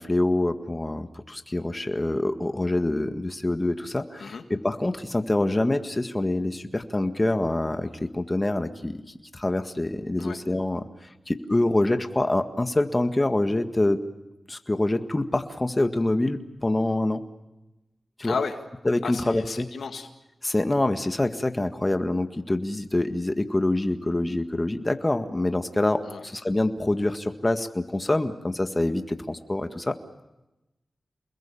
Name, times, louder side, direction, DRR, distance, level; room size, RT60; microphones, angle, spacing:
voice 1, 0.0-9.0 9.3-10.8 11.3-14.0 14.5-17.2 18.2-18.3 18.8-19.7 20.4-30.0, left 1 dB, 30° left, 7 dB, 1.8 m, -25 dB
voice 2, 18.2-18.6 19.0-20.1 26.1-26.3, left 5 dB, 85° left, 6 dB, 2.0 m, -33 dB
29.0 x 21.5 x 7.1 m, 0.97 s
cardioid pair, 40°, 0 cm